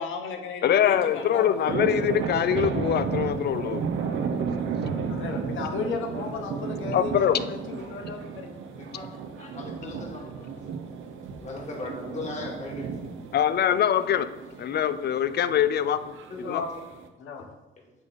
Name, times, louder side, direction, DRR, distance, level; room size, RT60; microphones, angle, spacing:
voice 1, 0.0-1.9 5.1-8.5 16.4-16.7 17.2-17.5, left 5 dB, 85° left, 1.0 m, -34 dB
voice 2, 0.6-4.3 6.9-7.5 13.3-14.3 14.6-16.6, left 9 dB, 55° left, 0.4 m, -24 dB
sound 1, 0.7-17.1, right 6 dB, 80° right, 0.7 m, -33 dB
voice 3, 8.8-9.1 9.4-10.5 11.4-12.9 16.3-16.6, left 2 dB, 35° left, 2.1 m, -38 dB
8.7 x 3.8 x 4.0 m
cardioid pair, 90°, 20 cm